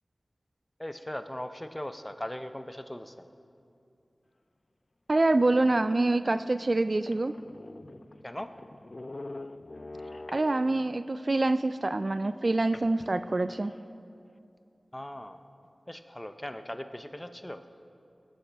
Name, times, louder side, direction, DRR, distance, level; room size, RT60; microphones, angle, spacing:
voice 1, 0.8-3.3 8.2-8.5 14.9-15.4 15.9-17.6, left 1 dB, 15° left, 9 dB, 0.7 m, -39 dB
voice 2, 5.1-7.3 10.3-13.7, right 2 dB, 45° right, 12 dB, 0.3 m, -26 dB
sound 1, 6.7-6.8 7.0-11.0 12.7-13.8, left 2 dB, 45° left, 0.3 m, -44 dB
20.5 x 11.5 x 3.4 m, 2.6 s
wide cardioid pair, 60°, 0 cm